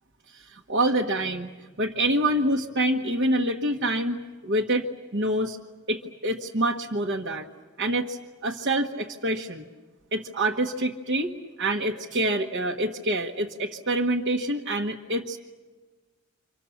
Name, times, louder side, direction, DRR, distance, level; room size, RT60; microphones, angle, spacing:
voice 1, 0.3-1.5 1.8-4.9 5.1-5.6 5.9-7.5 7.8-9.7 10.1-11.3 11.6-15.4, right 1 dB, 60° right, -1 dB, 1.3 m, -26 dB
29.5 x 25.5 x 7.2 m, 1.3 s
head